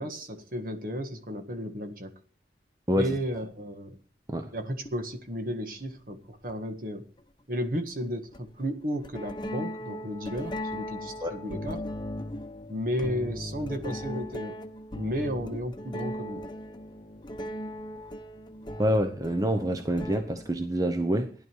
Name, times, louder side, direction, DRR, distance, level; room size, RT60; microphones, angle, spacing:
voice 1, 0.0-2.1 2.9-4.0 4.5-7.0 7.5-11.8 12.7-14.6 14.9-16.5, equal, 50° right, 1.7 m, -33 dB
sound 1, 4.9-5.0 6.5-6.6 8.3-8.5 9.0-20.6, equal, 25° left, 1.0 m, -38 dB
voice 2, 18.8-21.3, equal, 20° right, 0.8 m, -26 dB
15.0 x 11.0 x 4.6 m
head